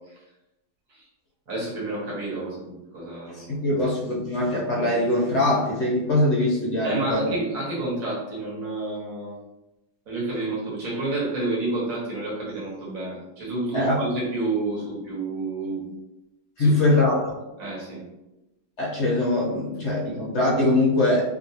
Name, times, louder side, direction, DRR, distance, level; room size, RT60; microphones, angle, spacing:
voice 1, 1.5-3.6 6.8-9.3 10.1-15.9 16.6-16.8 17.6-18.0, right 2 dB, 50° right, -5 dB, 1.4 m, -30 dB
voice 2, 3.3-7.3 13.7-14.0 16.6-17.3 18.8-21.2, left 1 dB, 55° left, -4 dB, 0.8 m, -22 dB
2.9 x 2.9 x 2.7 m, 0.96 s
omnidirectional pair, 2.0 m